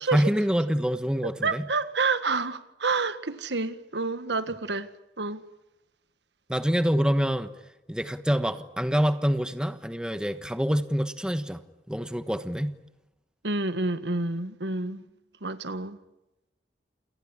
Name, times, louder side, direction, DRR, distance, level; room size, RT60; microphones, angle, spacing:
voice 1, 0.1-1.7 6.5-7.5 7.9-11.6 11.9-12.8, equal, 5° right, 1.2 m, -26 dB
voice 2, 1.4-4.9 5.2-5.4 13.4-15.0 15.4-16.0, right 3 dB, 80° right, 1.6 m, -28 dB
28.5 x 19.0 x 9.8 m
head